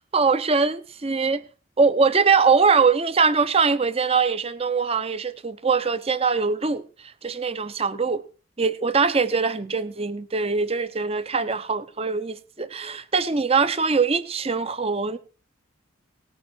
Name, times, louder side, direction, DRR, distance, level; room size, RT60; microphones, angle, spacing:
voice 1, 0.1-1.4 1.8-6.8 7.2-8.2 8.6-15.2, right 5 dB, 30° right, 0.7 m, -22 dB
18.5 x 9.0 x 4.4 m
head